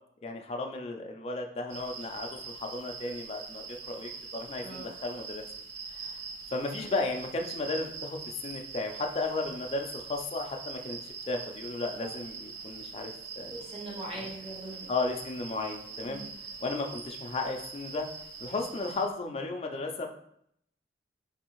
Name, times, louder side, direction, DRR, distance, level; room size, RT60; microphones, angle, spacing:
voice 1, 0.2-5.4 5.9-6.1 6.5-11.0 11.3-13.6 14.2-14.3 14.9-16.2 16.6-18.1 18.4-20.1, left 3 dB, 35° left, 3 dB, 0.3 m, -34 dB
sound 1, 1.7-19.1, right 5 dB, 80° right, 0.5 m, -43 dB
voice 2, 13.5-14.9 16.0-16.3, right 2 dB, 30° right, -4 dB, 1.0 m, -41 dB
4.0 x 2.6 x 2.9 m, 0.72 s
head